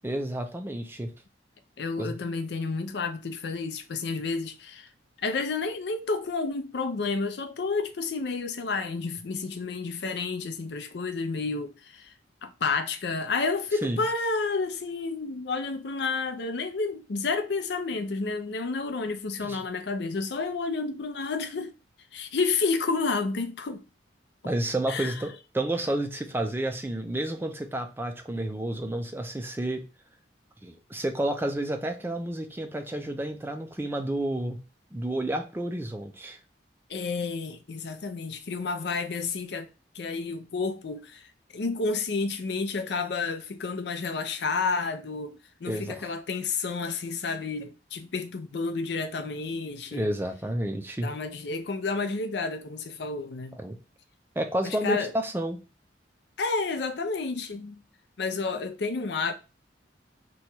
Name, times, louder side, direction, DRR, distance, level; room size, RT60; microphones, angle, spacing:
voice 1, 0.0-1.1 2.0-2.2 13.8-14.0 19.4-19.6 24.4-29.8 30.6-34.6 34.9-36.4 45.7-46.0 49.9-51.1 53.5-53.8 54.4-55.6, right 1 dB, 10° right, 0.4 m, -30 dB
voice 2, 1.8-4.9 5.2-12.1 12.4-21.7 22.1-23.8 24.9-25.2 36.9-39.7 39.9-41.2 41.5-50.1 51.0-53.6 54.6-55.1 56.4-57.8 58.2-59.3, left 4 dB, 60° left, 0.5 m, -30 dB
3.0 x 2.3 x 4.2 m
head